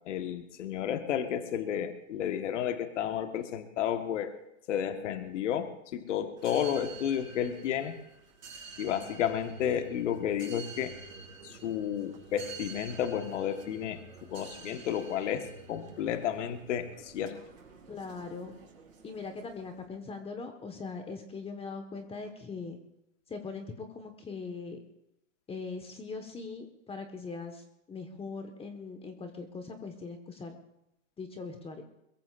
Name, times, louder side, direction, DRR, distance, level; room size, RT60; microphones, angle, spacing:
voice 1, 0.0-4.4 4.7-7.9 8.8-10.9 11.4-14.0 14.3-17.4, left 9 dB, 65° left, 7 dB, 1.5 m, -32 dB
sound 1, 6.4-19.9, right 5 dB, 90° right, 4.3 m, -49 dB
voice 2, 17.9-18.5 19.0-22.8 23.3-24.8 25.5-30.6 31.2-31.8, left 4 dB, 15° left, 6 dB, 1.4 m, -41 dB
22.5 x 22.0 x 2.6 m, 0.87 s
hypercardioid pair, 120°, 39 cm